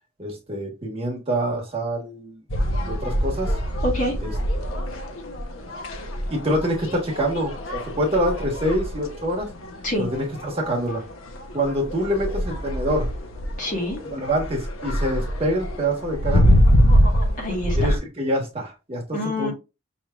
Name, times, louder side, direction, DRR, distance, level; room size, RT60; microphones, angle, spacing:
voice 1, 0.2-2.4 2.8-3.6 4.2-4.3 6.3-9.5 10.0-11.0 11.5-13.1 14.1-16.6 17.8-19.5, equal, 25° right, 1.3 m, -26 dB
sound 1, 2.5-18.0, equal, 75° left, 0.8 m, -24 dB
voice 2, 3.8-4.2 9.8-10.1 13.6-14.0 17.4-18.0 19.1-19.5, left 1 dB, 35° left, 1.5 m, -26 dB
5.6 x 3.1 x 2.3 m
head